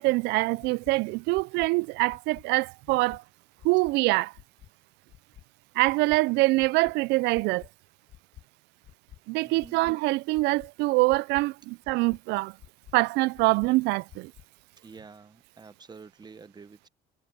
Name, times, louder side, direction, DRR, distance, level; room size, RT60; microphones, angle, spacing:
voice 1, 0.0-3.2 3.6-4.3 5.8-7.6 9.3-12.5 12.9-14.3, right 23 dB, 90° right, 0.4 m, -24 dB
sound 1, 0.6-0.9 1.3-1.7 2.1-2.4 2.8-3.2 3.6-3.9 4.3-4.7 5.1-5.4 5.8-6.2 6.6-6.9 7.3-7.7 8.1-8.4 8.8-9.2 9.6-9.9 10.3-10.7 11.1-11.4 11.8-12.2 12.6-12.9 13.3-13.7 14.1-14.4, left 12 dB, 65° left, 7.6 m, -49 dB
voice 2, 9.4-9.8 14.8-16.9, right 5 dB, 25° right, 1.0 m, -48 dB
cardioid pair, 110°, 17 cm